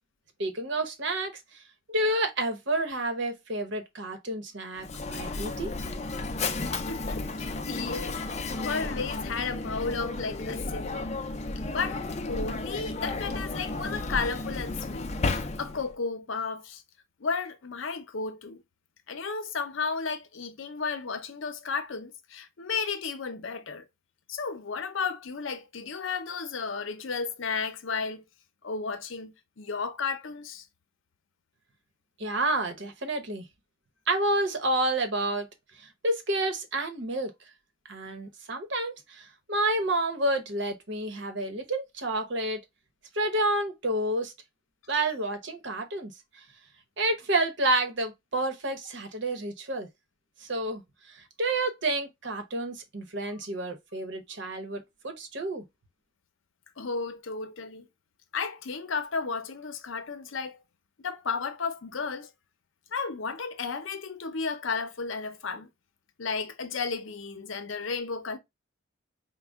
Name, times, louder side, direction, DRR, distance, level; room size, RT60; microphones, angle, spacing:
voice 1, 0.4-1.3 1.9-5.7 32.2-33.4 34.1-35.5 35.8-37.3 37.9-42.6 43.1-44.3 44.9-46.1 47.0-49.9 50.4-50.8 51.1-55.6, right 2 dB, 65° right, 1.0 m, -29 dB
Mechanisms, 4.8-15.9, left 3 dB, 35° left, 0.5 m, -33 dB
voice 2, 6.9-11.1 11.7-16.8 17.2-18.6 19.1-23.9 24.3-28.2 28.6-30.7 56.8-57.9 58.3-60.6 61.0-62.3 62.9-65.7 66.2-68.4, left 5 dB, 80° left, 0.7 m, -33 dB
5.2 x 2.2 x 3.5 m
head